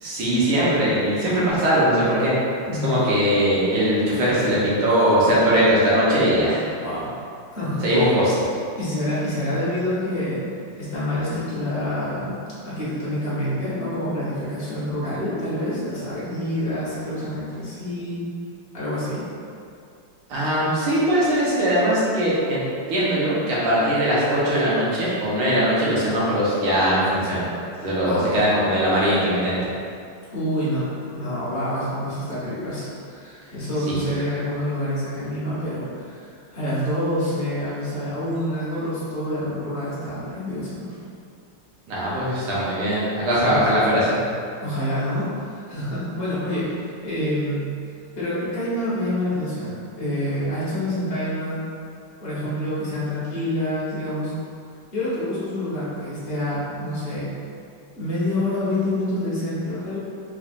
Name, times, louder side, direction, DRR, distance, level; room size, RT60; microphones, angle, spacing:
voice 1, 0.0-2.3 2.8-6.6 7.8-8.3 20.3-22.6 22.9-27.4 27.8-29.6 41.9-44.2, equal, 80° right, -8 dB, 1.8 m, -20 dB
voice 2, 6.7-7.1 7.5-8.2 8.8-10.4 10.7-12.4 12.6-18.2 18.7-19.2 28.0-28.6 30.3-30.8 31.1-40.9 43.4-43.9 44.6-47.6 48.1-51.6 52.2-54.3 54.9-57.3 57.9-60.0, left 1 dB, 40° left, -10 dB, 0.9 m, -27 dB
3.8 x 3.1 x 2.5 m, 2.4 s
omnidirectional pair, 2.4 m